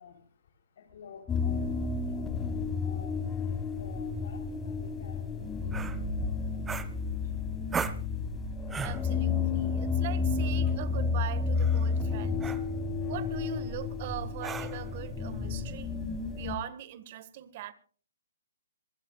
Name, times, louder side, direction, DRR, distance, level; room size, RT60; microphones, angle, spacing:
voice 1, 0.0-7.8, left 6 dB, 60° left, 3.5 m, -52 dB
sound 1, 1.3-16.6, left 5 dB, 15° left, 1.6 m, -31 dB
sound 2, 5.7-6.0 6.7-7.3 7.7-8.1 8.7-9.1 10.5-10.7 11.6-11.9 12.4-12.7 14.4-14.9, right 5 dB, 10° right, 0.9 m, -36 dB
voice 2, 8.8-12.5 13.1-15.9 16.3-17.7, right 12 dB, 40° right, 1.5 m, -41 dB
25.5 x 15.5 x 2.4 m
hypercardioid pair, 145°, 0 cm